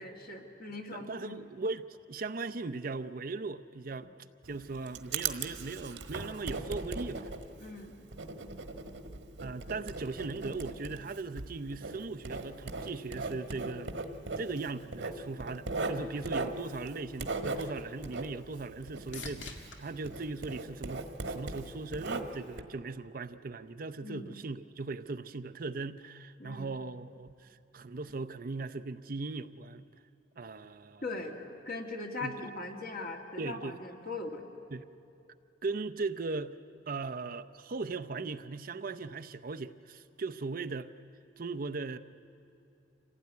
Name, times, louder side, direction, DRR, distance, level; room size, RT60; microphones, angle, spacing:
voice 1, 0.0-1.4 7.6-8.1 24.0-24.4 26.4-26.7 31.0-34.4, left 2 dB, 55° left, 2 dB, 2.2 m, -40 dB
voice 2, 0.9-4.1 4.4-7.3 9.4-13.9 14.4-29.8 30.4-31.0 32.2-32.5 33.4-33.8 34.7-34.8 35.6-36.6 36.9-40.9 41.4-42.0, right 3 dB, 50° right, 11 dB, 0.6 m, -38 dB
Writing, 4.4-19.8 20.0-22.6, right 3 dB, 80° right, 1.5 m, -38 dB
sound 1, 18.1-21.6 22.1-22.7 30.6-30.7, left 3 dB, 80° left, 2.0 m, -50 dB
26.5 x 16.5 x 9.4 m, 2.6 s
head